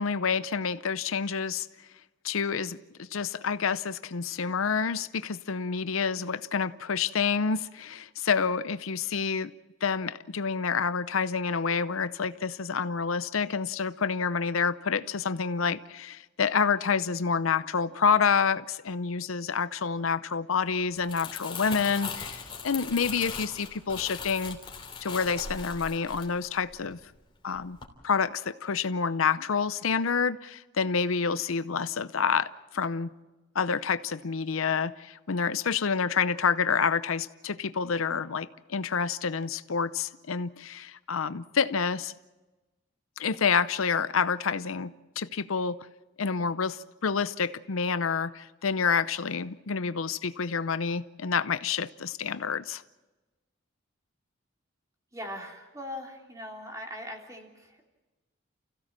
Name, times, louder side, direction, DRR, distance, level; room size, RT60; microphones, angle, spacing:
voice 1, 0.0-1.7 2.2-9.5 9.8-24.6 25.0-27.0 27.4-27.8 28.0-33.1 33.5-42.1 43.2-45.9 46.2-52.8, left 5 dB, 85° left, 14 dB, 0.7 m, -28 dB
Crumpling crinkling, 20.8-27.2 27.5-27.8, left 5 dB, 25° left, 3.2 m, -40 dB
voice 2, 55.1-57.8, left 1 dB, 15° right, 0 dB, 3.4 m, -40 dB
29.5 x 16.0 x 7.5 m, 1.2 s
head